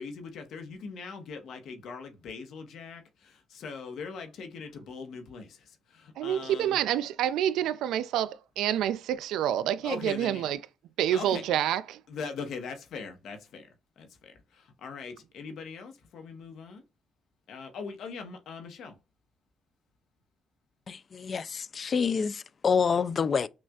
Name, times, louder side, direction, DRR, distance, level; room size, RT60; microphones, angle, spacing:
voice 1, 0.0-6.8 9.8-10.5 11.1-11.4 12.1-13.7 14.0-16.8 17.5-19.0, left 5 dB, 75° left, 0.9 m, -41 dB
voice 2, 6.2-10.6 11.0-12.0, right 11 dB, 85° right, 0.3 m, -28 dB
voice 3, 20.9-23.5, left 6 dB, 45° left, 0.3 m, -27 dB
6.1 x 2.4 x 2.3 m
cardioid pair, 90°, 0 cm